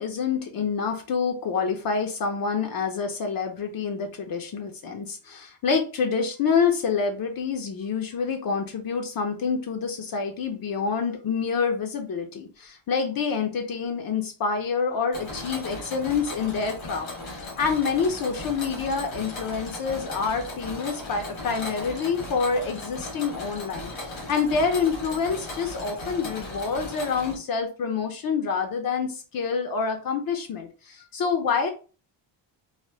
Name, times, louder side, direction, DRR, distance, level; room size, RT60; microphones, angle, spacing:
voice 1, 0.0-31.7, left 5 dB, 50° left, 4 dB, 0.5 m, -27 dB
Mechanisms, 15.1-27.3, left 2 dB, 90° left, 1.3 m, -37 dB
3.3 x 2.2 x 2.7 m, 0.35 s
cardioid pair, 150°, 46 cm